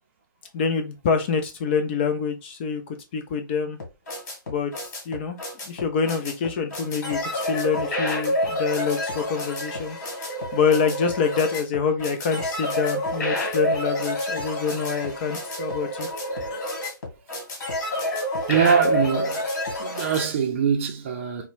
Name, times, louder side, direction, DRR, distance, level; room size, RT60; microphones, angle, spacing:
voice 1, 0.5-2.8 3.1-3.8 4.5-5.4 5.7-16.1, left 6 dB, 30° left, 0.5 m, -26 dB
sound 1, 3.8-20.2, left 1 dB, 45° left, 1.8 m, -28 dB
voice 2, 18.5-19.5 19.8-21.5, right 7 dB, 35° right, 0.6 m, -23 dB
4.1 x 2.1 x 2.5 m
hypercardioid pair, 145°, 11 cm